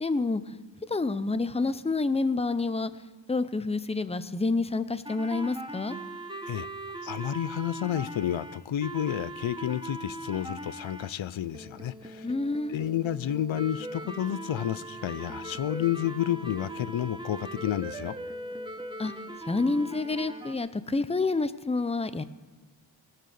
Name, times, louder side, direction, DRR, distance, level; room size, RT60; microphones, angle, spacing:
voice 1, 0.0-0.4 0.9-2.9 3.3-6.0 12.2-12.8 19.0-19.1 19.5-22.2, left 3 dB, 15° left, 13 dB, 0.6 m, -28 dB
sound 1, 5.0-11.1 11.5-20.5, right 1 dB, 10° right, 1.1 m, -40 dB
voice 2, 7.0-12.3 12.7-18.2, left 11 dB, 90° left, 16 dB, 0.5 m, -30 dB
19.5 x 6.6 x 6.7 m, 1.4 s
wide cardioid pair, 75°, 45 cm